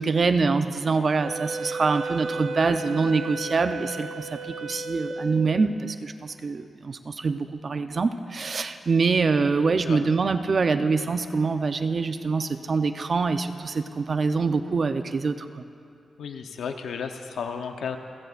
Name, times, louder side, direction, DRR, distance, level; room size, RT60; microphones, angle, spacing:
voice 1, 0.0-15.6, right 4 dB, 50° right, 8 dB, 0.7 m, -25 dB
Wind instrument woodwind instrument, 1.2-5.7, right 2 dB, 80° right, 0.9 m, -34 dB
voice 2, 16.2-18.0, left 6 dB, 90° left, 6 dB, 0.9 m, -33 dB
29.0 x 15.0 x 2.5 m, 2.5 s
cardioid pair, 85°, 0 cm